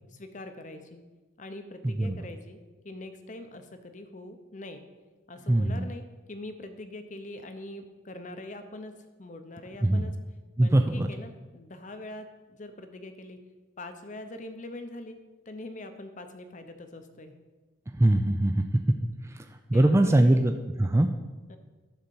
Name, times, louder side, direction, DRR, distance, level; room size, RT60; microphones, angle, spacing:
voice 1, 0.1-1.0 1.4-2.6 2.8-4.8 5.3-8.9 9.2-10.1 10.6-13.4 13.8-15.2 15.5-17.4 19.7-20.7 21.5-21.6, left 1 dB, 35° left, 8 dB, 0.7 m, -43 dB
voice 2, 1.8-2.2 5.5-5.9 9.8-10.1 10.6-11.1 18.0-18.8 19.7-21.1, right 1 dB, 15° right, 6 dB, 0.4 m, -22 dB
11.5 x 4.3 x 6.9 m, 1.3 s
head